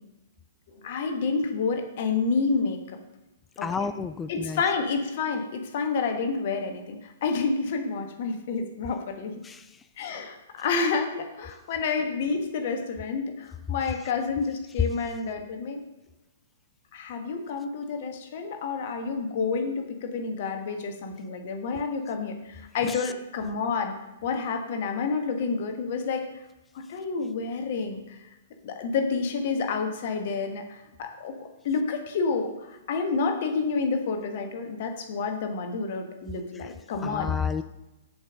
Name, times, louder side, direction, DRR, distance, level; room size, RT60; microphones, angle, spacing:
voice 1, 0.7-2.8 3.6-3.9 4.3-9.4 10.0-15.8 16.9-23.9 24.2-26.2 26.7-28.2 28.6-31.3 31.6-37.3, left 4 dB, 45° left, 5 dB, 1.4 m, -29 dB
voice 2, 3.6-4.6 9.4-9.9 22.8-23.1 36.5-36.7 37.0-37.6, left 5 dB, 15° left, 11 dB, 0.3 m, -31 dB
7.0 x 5.3 x 6.3 m, 1.0 s
figure-of-eight pair, 115°, 0 cm